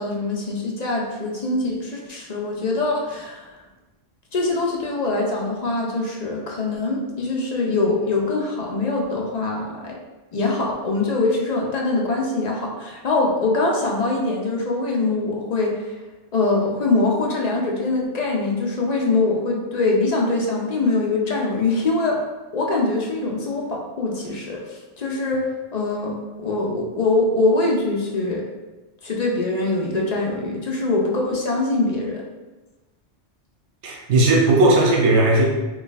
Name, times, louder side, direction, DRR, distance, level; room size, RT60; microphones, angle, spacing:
voice 1, 0.0-3.5 4.3-10.0 10.3-15.9 16.3-22.2 22.5-25.4 25.7-28.4 29.0-32.2, left 2 dB, 50° left, -1 dB, 0.5 m, -23 dB
voice 2, 33.8-35.4, right 2 dB, 80° right, -1 dB, 1.0 m, -16 dB
3.1 x 2.4 x 3.9 m, 1.1 s
omnidirectional pair, 1.2 m